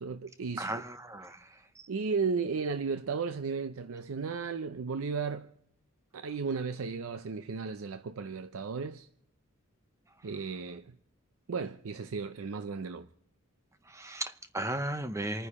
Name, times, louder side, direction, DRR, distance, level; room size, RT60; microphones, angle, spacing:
voice 1, 0.0-0.8 1.9-5.5 6.1-9.1 10.2-10.9 11.5-13.1, right 5 dB, 80° right, 0.5 m, -34 dB
voice 2, 0.6-1.4 13.9-15.5, right 1 dB, 15° right, 0.7 m, -35 dB
28.0 x 9.7 x 4.2 m
head